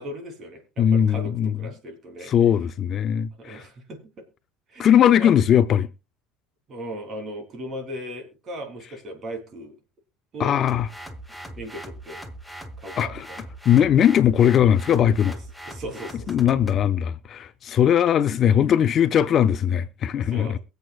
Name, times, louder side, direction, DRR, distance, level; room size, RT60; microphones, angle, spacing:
voice 1, 0.0-2.3 3.4-4.3 4.7-5.4 6.7-9.8 10.3-10.6 11.5-12.2 12.8-13.4 15.6-16.4 20.2-20.6, equal, 35° right, 3.3 m, -37 dB
voice 2, 0.8-1.5 2.3-3.6 4.8-5.9 10.4-10.9 13.0-13.2 13.7-15.4 16.3-20.6, left 9 dB, 35° left, 0.5 m, -19 dB
sound 1, 10.7-16.9, right 1 dB, ahead, 1.0 m, -40 dB
23.0 x 7.9 x 2.4 m
cardioid pair, 145°, 0 cm